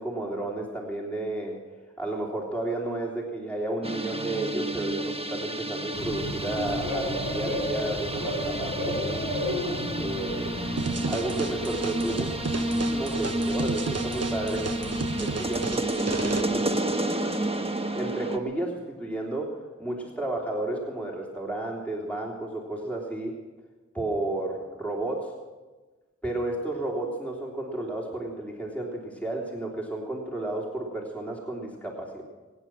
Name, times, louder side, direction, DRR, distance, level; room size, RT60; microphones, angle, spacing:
voice 1, 0.0-1.6 2.0-9.3 10.0-10.5 11.1-14.7 15.2-16.8 17.9-23.4 23.9-25.3 26.2-32.2, right 2 dB, 5° left, -2 dB, 3.3 m, -32 dB
sound 1, 3.8-18.4, right 1 dB, 20° right, 1.3 m, -31 dB
Bird / Cricket, 5.9-15.7, left 1 dB, 80° left, 4.5 m, -34 dB
sound 2, 10.8-16.4, right 4 dB, 60° right, 1.0 m, -33 dB
23.5 x 9.7 x 6.1 m, 1.3 s
wide cardioid pair, 50°, 29 cm